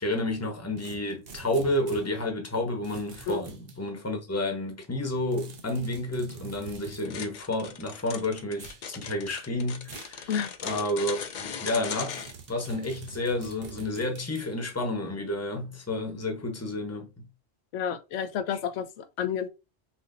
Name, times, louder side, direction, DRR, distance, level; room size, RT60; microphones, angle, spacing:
voice 1, 0.0-12.2 12.5-17.3, left 1 dB, 15° left, 0.9 m, -30 dB
sound 1, 0.8-2.1 2.8-3.8 5.3-7.1 8.5-8.9 9.8-10.2 10.7-10.8 12.1-14.5, right 5 dB, 55° right, 1.0 m, -45 dB
sound 2, 7.0-12.3, left 6 dB, 55° left, 0.6 m, -38 dB
voice 2, 17.7-19.5, left 8 dB, 85° left, 0.9 m, -30 dB
5.7 x 2.8 x 2.6 m
omnidirectional pair, 1.2 m